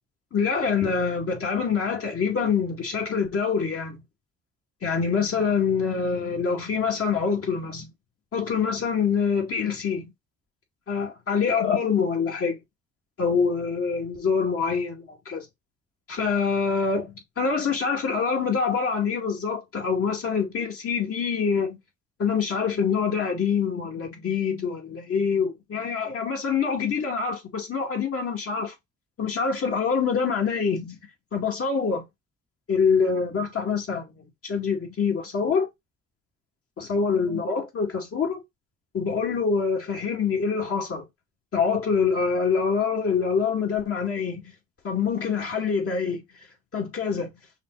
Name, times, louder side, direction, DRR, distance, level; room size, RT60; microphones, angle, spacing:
voice 1, 0.3-4.0 4.8-7.9 8.3-10.1 10.9-12.6 13.2-15.5 16.1-21.8 22.2-28.7 29.2-31.0 31.3-32.0 32.7-34.1 34.4-35.7 36.8-38.4 38.9-41.0 41.5-44.5 44.8-46.2 46.7-47.3, left 5 dB, 50° left, 1.9 m, -25 dB
5.6 x 2.1 x 3.8 m
cardioid pair, 90°, 30 cm